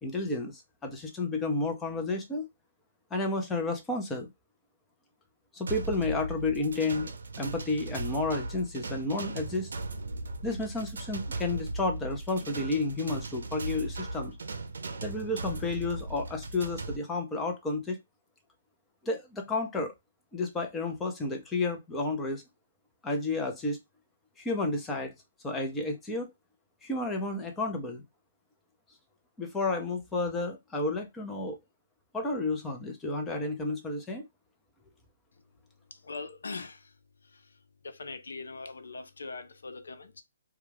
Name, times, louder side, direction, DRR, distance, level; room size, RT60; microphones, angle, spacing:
voice 1, 0.0-2.5 3.1-4.3 5.5-9.7 10.4-14.3 15.0-18.0 19.0-19.9 20.3-22.4 23.0-23.8 24.4-25.1 25.4-26.3 26.8-28.0 29.4-31.6 32.1-34.3, left 2 dB, 10° left, 0.6 m, -31 dB
sound 1, 5.7-17.0, right 2 dB, 80° right, 0.5 m, -37 dB
voice 2, 36.0-36.9 37.3-37.4 37.8-40.2, left 3 dB, 85° left, 0.5 m, -41 dB
2.3 x 2.3 x 3.1 m
hypercardioid pair, 155°, 0 cm